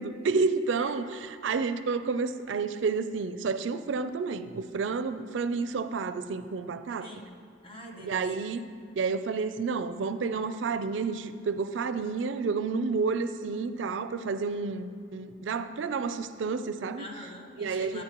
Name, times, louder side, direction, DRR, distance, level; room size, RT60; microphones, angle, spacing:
voice 1, 0.0-7.1 8.0-8.7 9.0-17.1 17.6-18.0, right 4 dB, 85° right, 11 dB, 0.4 m, -30 dB
voice 2, 7.0-8.4 17.0-18.0, equal, 30° left, 1 dB, 1.2 m, -45 dB
12.5 x 9.6 x 3.0 m, 2.6 s
head